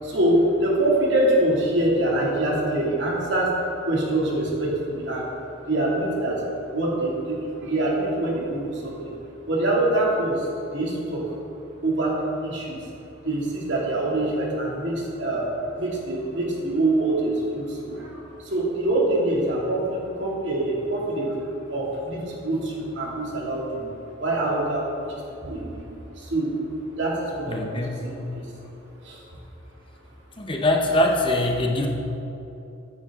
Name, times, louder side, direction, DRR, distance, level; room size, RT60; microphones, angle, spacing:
voice 1, 0.0-3.5 3.8-5.3 5.7-6.4 6.7-8.9 9.5-10.5 10.7-11.3 11.8-12.8 13.2-23.8 24.2-25.8 26.2-26.6 27.0-28.4 29.0-29.2, right 1 dB, 60° right, -4 dB, 2.5 m, -25 dB
voice 2, 27.5-28.1 30.4-31.9, left 1 dB, 25° left, 2 dB, 0.8 m, -23 dB
14.5 x 9.7 x 3.7 m, 2.9 s
head